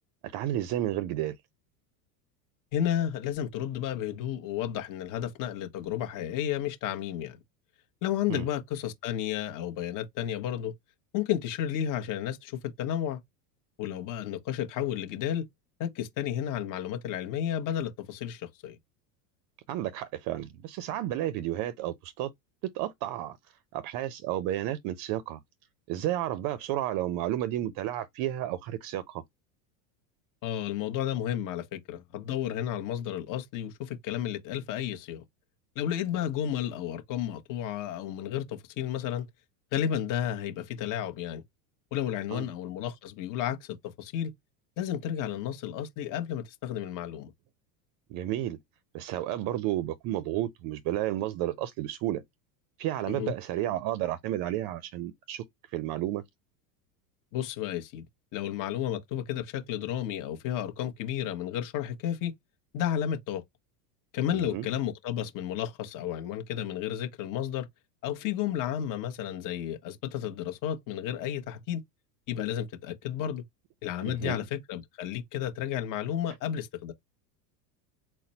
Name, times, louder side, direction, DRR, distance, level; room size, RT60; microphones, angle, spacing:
voice 1, 0.2-1.4 8.3-8.5 19.7-22.3 22.6-25.4 25.9-29.2 42.3-42.5 48.1-48.6 48.9-52.2 52.8-56.2 64.3-64.7 74.1-74.4, right 13 dB, 45° right, 0.5 m, -32 dB
voice 2, 2.7-7.4 8.0-10.7 11.1-13.2 13.8-15.4 15.8-18.8 30.4-35.2 35.7-39.3 39.7-41.4 41.9-44.3 44.8-47.3 53.1-53.3 57.3-58.0 58.3-62.3 62.7-63.4 64.1-67.7 68.0-71.8 72.3-73.4 73.8-76.9, left 10 dB, 40° left, 1.0 m, -32 dB
4.1 x 2.1 x 4.0 m
supercardioid pair, 125°, 49 cm